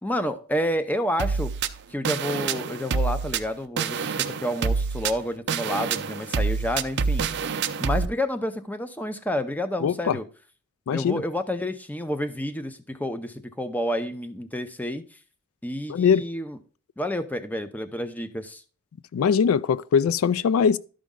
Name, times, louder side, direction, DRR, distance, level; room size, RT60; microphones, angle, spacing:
voice 1, 0.0-1.5 1.9-7.4 7.8-10.2 10.9-15.2 15.6-16.6 17.0-18.6, left 1 dB, 10° left, 0.6 m, -29 dB
sound 1, 1.2-8.1, right 5 dB, 55° right, 0.5 m, -27 dB
voice 2, 9.8-10.2 10.9-11.2 15.9-16.3 19.1-20.8, left 7 dB, 80° left, 0.3 m, -21 dB
12.0 x 5.1 x 3.7 m
head